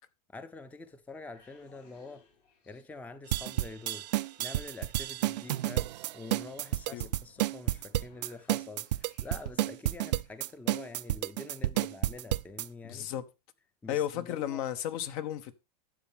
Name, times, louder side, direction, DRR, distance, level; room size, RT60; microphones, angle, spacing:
voice 1, 0.3-2.2 2.7-4.0 4.4-13.1 13.8-14.6, left 3 dB, 5° left, 0.6 m, -46 dB
sound 1, 0.9-9.7, left 4 dB, 85° left, 7.0 m, -65 dB
sound 2, 3.3-12.7, right 15 dB, 85° right, 0.4 m, -31 dB
voice 2, 12.8-13.3 13.9-15.6, left 11 dB, 55° left, 1.1 m, -34 dB
12.0 x 7.4 x 3.6 m
supercardioid pair, 130°, 21 cm